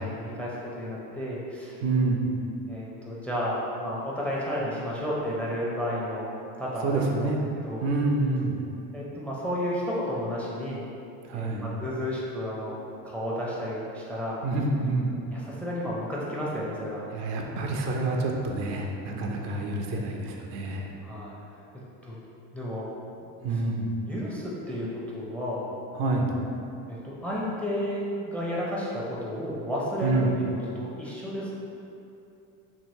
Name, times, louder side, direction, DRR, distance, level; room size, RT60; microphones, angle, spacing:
voice 1, 0.0-1.8 2.7-6.3 6.6-7.3 7.6-7.8 8.9-10.8 11.3-12.8 13.0-14.4 15.3-17.0 19.1-19.3 21.0-21.3 22.0-22.2 22.5-22.9 24.1-25.6 26.9-30.5 30.8-31.6, equal, 5° left, -5 dB, 0.4 m, -32 dB
voice 2, 1.8-2.3 6.8-7.4 7.8-8.6 11.2-11.7 14.4-15.1 17.1-20.9 23.4-23.9 25.9-26.3 30.0-30.4, right 2 dB, 70° right, 1 dB, 0.5 m, -27 dB
2.8 x 2.7 x 2.7 m, 2.7 s
hypercardioid pair, 60°, 47 cm